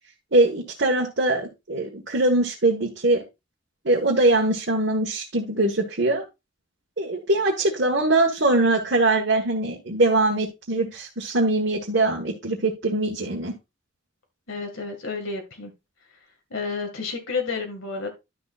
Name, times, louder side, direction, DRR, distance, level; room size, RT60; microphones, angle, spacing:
voice 1, 0.3-3.2 3.9-6.2 7.0-13.5, right 2 dB, 60° right, -2 dB, 1.6 m, -22 dB
voice 2, 14.5-15.7 16.5-18.1, left 4 dB, 85° left, 3 dB, 2.1 m, -30 dB
11.5 x 6.8 x 2.5 m, 0.23 s
head